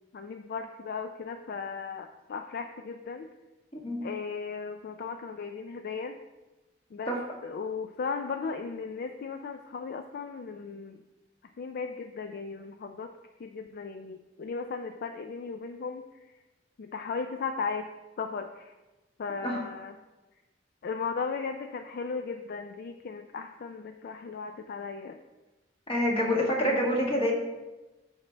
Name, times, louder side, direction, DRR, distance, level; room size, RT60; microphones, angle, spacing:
voice 1, 0.1-3.3 4.0-6.2 6.9-7.2 7.4-11.0 11.6-13.1 13.4-16.0 16.8-17.9 18.2-18.7 19.2-19.9 20.8-25.2 26.3-26.8, left 5 dB, 55° left, 6 dB, 0.4 m, -36 dB
voice 2, 25.9-27.3, equal, 30° left, -1 dB, 1.5 m, -27 dB
9.0 x 5.8 x 3.3 m, 1.1 s
head